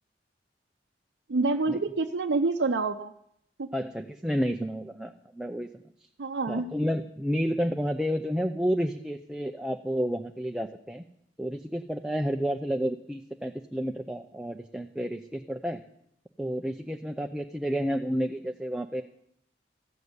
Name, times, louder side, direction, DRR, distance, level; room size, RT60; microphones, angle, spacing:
voice 1, 1.3-3.1 3.6-3.7 6.2-6.7, right 3 dB, 90° right, 4 dB, 0.6 m, -27 dB
voice 2, 3.7-5.7 6.5-11.0 11.4-15.8 16.4-19.0, equal, 5° right, 5 dB, 0.5 m, -30 dB
14.5 x 6.8 x 9.6 m, 0.76 s
head